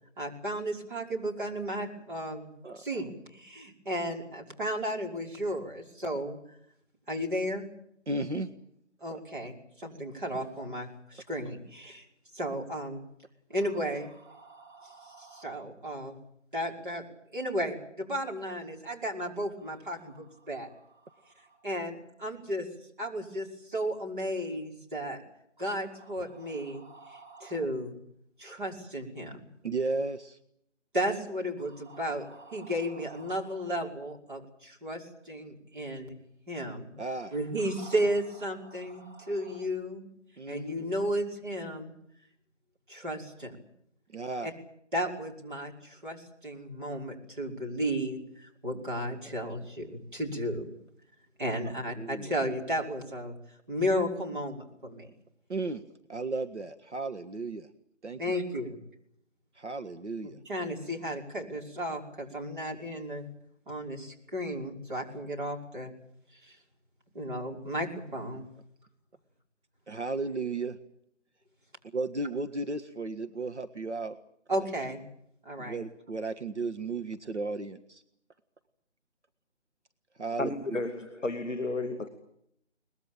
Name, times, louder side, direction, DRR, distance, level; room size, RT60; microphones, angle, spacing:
voice 1, 0.2-2.5 2.8-6.6 7.1-7.7 9.0-12.0 12.3-13.0 13.5-16.2 16.5-17.0 17.3-20.7 21.2-22.7 23.0-25.2 25.6-28.0 28.4-29.4 30.9-36.2 36.5-36.9 37.3-40.1 40.5-41.9 42.9-43.6 44.4-44.5 44.9-50.6 51.4-53.4 53.7-55.1 58.2-58.8 60.2-63.3 63.7-65.9 66.4-66.6 67.1-68.5 74.5-75.0 75.4-75.8, equal, 40° right, 0 dB, 5.6 m, -34 dB
voice 2, 8.1-8.5 29.6-30.4 37.0-37.3 40.4-40.9 44.1-44.5 52.0-52.3 55.5-55.8 56.1-57.7 58.0-58.3 59.5-60.4 69.9-70.8 71.9-74.2 74.5-74.7 75.6-78.0 80.2-80.8, right 3 dB, 65° right, 8 dB, 1.7 m, -34 dB
voice 3, 80.4-82.1, left 2 dB, ahead, -20 dB, 1.1 m, -32 dB
22.5 x 20.5 x 9.0 m, 0.73 s
figure-of-eight pair, 170°, 36 cm